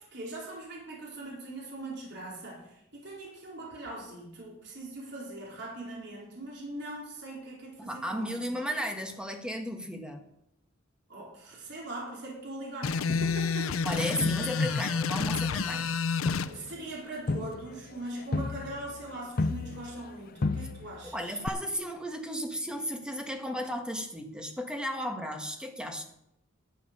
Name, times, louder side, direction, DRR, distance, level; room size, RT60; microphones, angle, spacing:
voice 1, 0.0-8.4 11.1-13.9 16.4-21.4, right 1 dB, 60° right, -3 dB, 4.2 m, -41 dB
voice 2, 7.8-10.2 13.8-15.9 21.0-26.0, equal, 5° right, 4 dB, 1.6 m, -34 dB
sound 1, 12.8-16.5, left 5 dB, 90° left, 0.6 m, -29 dB
Crowd, 13.1-14.9 15.2-20.1 20.4-21.1 21.5-21.6, left 3 dB, 45° left, 0.5 m, -34 dB
12.5 x 7.7 x 6.8 m, 0.79 s
head